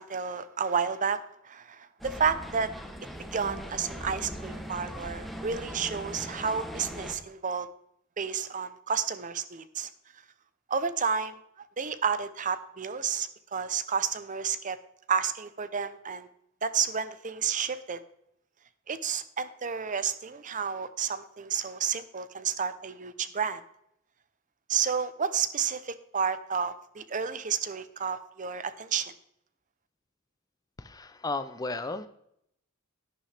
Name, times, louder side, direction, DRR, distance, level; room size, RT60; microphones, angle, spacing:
voice 1, 0.0-2.7 3.3-7.7 8.2-9.9 10.7-11.4 11.8-14.8 15.1-16.3 16.6-18.0 18.9-23.6 24.7-29.1, right 6 dB, 35° right, 13 dB, 0.6 m, -31 dB
sound 1, 2.0-7.1, equal, ahead, 0.9 m, -40 dB
voice 2, 30.8-32.1, left 3 dB, 15° left, 12 dB, 0.4 m, -34 dB
11.5 x 10.0 x 3.4 m, 0.74 s
head